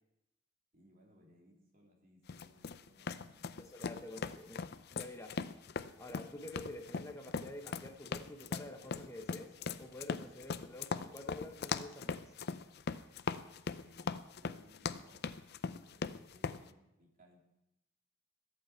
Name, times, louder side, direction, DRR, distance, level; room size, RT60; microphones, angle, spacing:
voice 1, 0.7-3.5 13.7-15.3 15.9-17.4, left 1 dB, 45° right, 0 dB, 2.7 m, -63 dB
sound 1, 2.3-16.6, left 5 dB, 55° left, 0.5 m, -40 dB
voice 2, 3.6-4.7 4.9-5.3 6.0-9.5 9.8-12.3, left 1 dB, 15° left, 4 dB, 1.0 m, -48 dB
21.5 x 8.3 x 4.5 m, 0.89 s
head